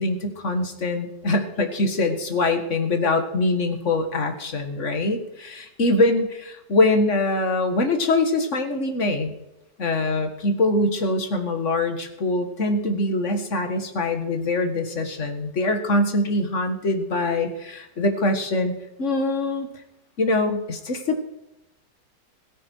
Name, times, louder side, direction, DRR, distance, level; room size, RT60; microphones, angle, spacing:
voice 1, 0.0-9.3 9.8-18.7 19.0-19.7 20.2-21.2, left 2 dB, 40° left, 6 dB, 2.0 m, -23 dB
17.0 x 14.0 x 4.6 m, 0.90 s
omnidirectional pair, 2.0 m